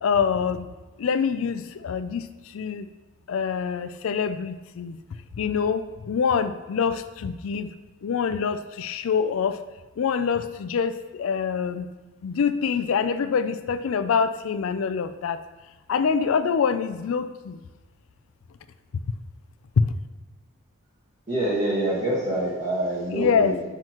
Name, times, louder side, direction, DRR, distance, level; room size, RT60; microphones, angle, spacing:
voice 1, 0.0-0.7 1.0-2.9 3.3-5.0 5.4-7.7 8.0-9.6 10.0-11.9 12.2-15.4 15.9-17.6 19.8-19.9 23.1-23.6, left 6 dB, 75° left, 12 dB, 0.4 m, -25 dB
voice 2, 21.3-23.6, right 1 dB, 35° right, -7 dB, 1.3 m, -26 dB
7.7 x 5.9 x 3.0 m, 1.2 s
head